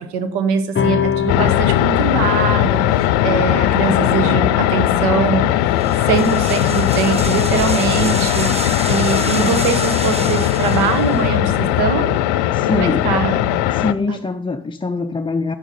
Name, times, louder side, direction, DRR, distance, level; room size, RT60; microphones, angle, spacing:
voice 1, 0.0-5.8 6.1-12.2 12.7-13.6 14.1-14.2, right 6 dB, 80° right, 9 dB, 1.1 m, -22 dB
sound 1, 0.7-7.5, left 7 dB, 30° left, 0.8 m, -27 dB
sound 2, 1.3-13.9, left 13 dB, 85° left, 0.5 m, -18 dB
sound 3, 5.8-11.4, right 2 dB, 15° right, 1.2 m, -29 dB
voice 2, 12.5-13.2 13.6-15.6, left 4 dB, 15° left, 7 dB, 0.4 m, -23 dB
7.3 x 6.3 x 5.3 m, 0.70 s
supercardioid pair, 60°, 39 cm